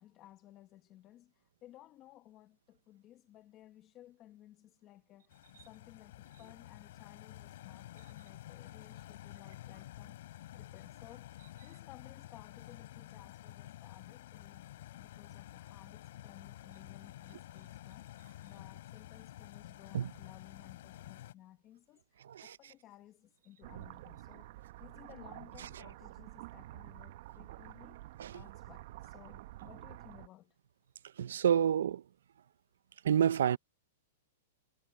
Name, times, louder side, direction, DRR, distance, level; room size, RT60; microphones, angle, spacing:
voice 1, 0.0-14.6 15.0-18.1 18.4-30.6, left 14 dB, 30° left, 1.1 m, -58 dB
Stream, 5.3-21.3, left 14 dB, 60° left, 3.8 m, -50 dB
voice 2, 22.2-22.6 25.6-25.7 28.2-28.4 31.2-32.0 33.0-33.6, right 9 dB, 85° right, 0.6 m, -29 dB
sound 1, 23.6-30.3, right 16 dB, 55° right, 1.0 m, -49 dB
supercardioid pair, 155°, 0 cm